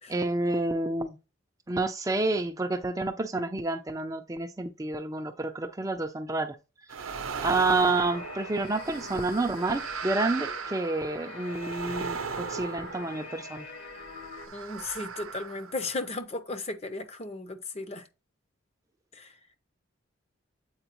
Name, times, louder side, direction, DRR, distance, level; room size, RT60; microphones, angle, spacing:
voice 1, 0.1-1.2 1.7-6.6 7.0-7.1 7.4-13.7, right 2 dB, 15° right, 0.4 m, -29 dB
sound 1, 6.9-13.7 14.3-16.2, right 6 dB, 85° right, 0.6 m, -38 dB
sound 2, 7.8-14.5, left 3 dB, 70° left, 1.8 m, -43 dB
voice 2, 14.5-18.1 19.1-19.4, left 2 dB, 30° left, 0.7 m, -35 dB
7.9 x 4.5 x 3.0 m
head